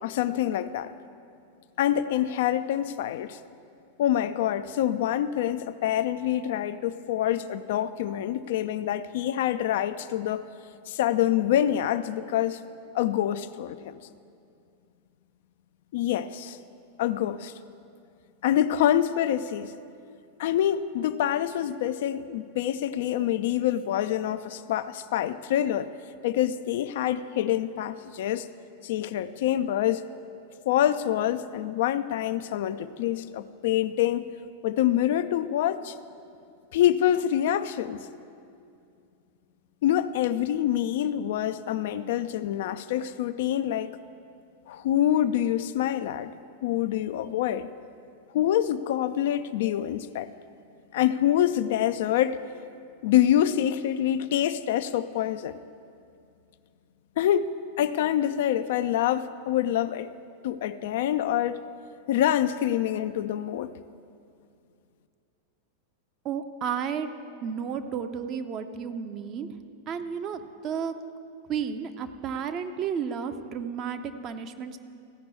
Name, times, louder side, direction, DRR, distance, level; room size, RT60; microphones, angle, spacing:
voice 1, 0.0-0.9 1.8-3.4 4.0-10.5 10.9-12.6 12.9-13.9 15.9-16.6 17.0-17.5 18.4-19.7 20.4-25.9 26.2-28.5 28.8-30.1 30.7-34.3 34.6-36.0 36.7-38.1 39.8-44.0 44.7-46.3 46.6-47.7 48.3-50.3 50.9-52.5 53.0-55.6 57.2-60.1 60.4-61.6 62.1-63.7, left 11 dB, 55° left, 11 dB, 0.4 m, -26 dB
voice 2, 66.2-67.1 67.4-69.5 69.9-70.9 71.5-74.8, right 7 dB, 35° right, 8 dB, 0.7 m, -32 dB
14.5 x 6.0 x 8.2 m, 2.5 s
figure-of-eight pair, 90°, 0 cm